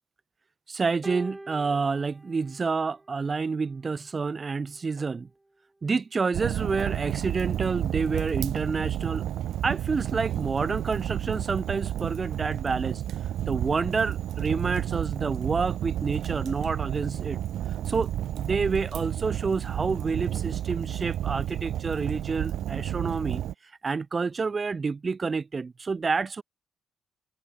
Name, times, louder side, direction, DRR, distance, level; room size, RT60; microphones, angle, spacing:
voice 1, 0.7-5.3 5.8-9.3 9.6-13.0 13.5-17.4 17.9-23.4 23.8-26.4, right 4 dB, 35° right, 2.3 m, -29 dB
sound 1, 1.0-3.5 4.5-4.7, right 2 dB, 10° right, 5.9 m, -44 dB
Fire, 6.3-23.5, right 12 dB, 75° right, 0.6 m, -31 dB
cardioid pair, 90°, 0 cm